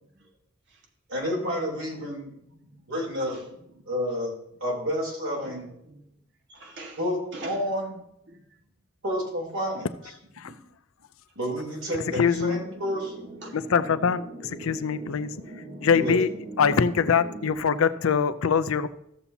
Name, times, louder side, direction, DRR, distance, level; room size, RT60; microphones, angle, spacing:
voice 1, 1.1-2.3 2.9-3.4 3.9-4.3 4.6-5.6 7.0-7.9 9.0-9.9 11.3-13.3 15.9-16.2, equal, 75° right, -2 dB, 3.4 m, -29 dB
voice 2, 1.9-2.9 3.3-3.4 3.7-4.0 5.4-6.2 6.5-7.0 7.3-8.0 8.3-8.6 10.4-10.6 11.0-11.1 12.6-13.0 13.4-13.6 14.4-15.9 17.5-17.7 18.0-18.1, right 2 dB, 60° right, 1 dB, 1.8 m, -47 dB
sound 1, 12.0-17.5, right 2 dB, 40° right, 1.7 m, -41 dB
voice 3, 12.2-12.6 13.5-15.3 15.8-16.3 16.6-18.9, left 6 dB, 80° left, 13 dB, 0.5 m, -23 dB
14.5 x 7.0 x 2.8 m, 0.78 s
head